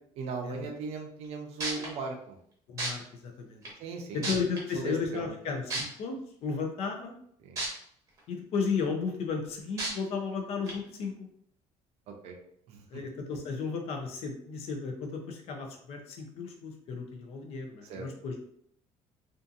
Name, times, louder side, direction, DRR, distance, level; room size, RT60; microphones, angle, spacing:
voice 1, 0.2-2.4 3.8-4.3 4.7-5.3 7.4-7.6 12.1-12.4 12.7-13.0 17.9-18.1, right 4 dB, 55° right, 3 dB, 0.5 m, -38 dB
sound 1, 1.2-1.3 1.6-1.9 2.8-2.9 3.6-3.7 4.2-4.6 5.7-5.8 7.6-7.7 8.2-8.3 9.8-9.9 10.7-10.8, right 2 dB, 25° right, 0.8 m, -31 dB
voice 2, 2.7-3.6 4.1-6.2 6.4-7.1 8.3-11.1 12.9-18.4, left 5 dB, 55° left, 3 dB, 0.5 m, -34 dB
2.6 x 2.5 x 2.4 m, 0.67 s
cardioid pair, 175°, 13 cm